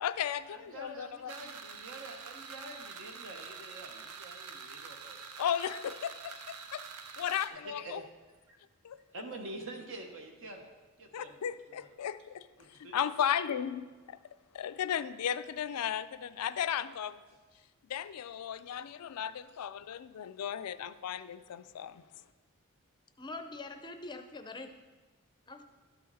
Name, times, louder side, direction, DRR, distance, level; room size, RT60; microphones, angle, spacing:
voice 1, 0.0-1.4 5.4-6.8 7.2-8.0 8.8-9.0 11.1-14.2 14.5-17.2 17.9-22.0, left 9 dB, 85° left, 13 dB, 0.4 m, -35 dB
voice 2, 0.5-5.2 7.5-8.0 9.1-10.6 11.0-11.4 11.8-11.9 12.6-13.0, right 2 dB, 60° right, 3 dB, 1.2 m, -46 dB
sound 1, 1.3-7.5, right 6 dB, 85° right, 0.7 m, -46 dB
voice 3, 23.2-24.7 25.5-25.6, left 2 dB, 20° left, 7 dB, 0.5 m, -43 dB
12.5 x 5.7 x 4.1 m, 1.3 s
head